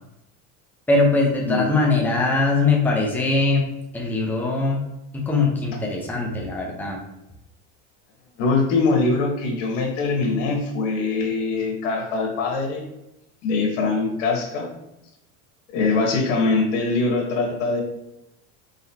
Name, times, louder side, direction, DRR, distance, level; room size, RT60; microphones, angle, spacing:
voice 1, 0.9-3.7 3.9-4.8 5.1-7.0, left 3 dB, 5° left, -2 dB, 0.8 m, -21 dB
voice 2, 8.4-12.9 13.4-14.7 15.7-17.8, left 3 dB, 85° left, 1 dB, 1.3 m, -22 dB
4.4 x 4.0 x 2.8 m, 0.87 s
supercardioid pair, 130°, 37 cm